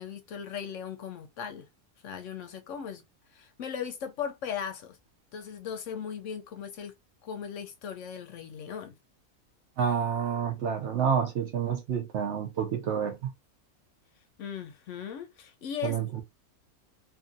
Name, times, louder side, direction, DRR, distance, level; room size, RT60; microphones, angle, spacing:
voice 1, 0.0-1.6 2.0-3.0 3.3-5.0 5.3-6.9 7.2-8.9 14.4-16.0, left 8 dB, 70° left, 0.8 m, -38 dB
voice 2, 9.8-13.3 15.8-16.2, right 7 dB, 65° right, 0.8 m, -29 dB
2.7 x 2.6 x 2.5 m
omnidirectional pair, 1.5 m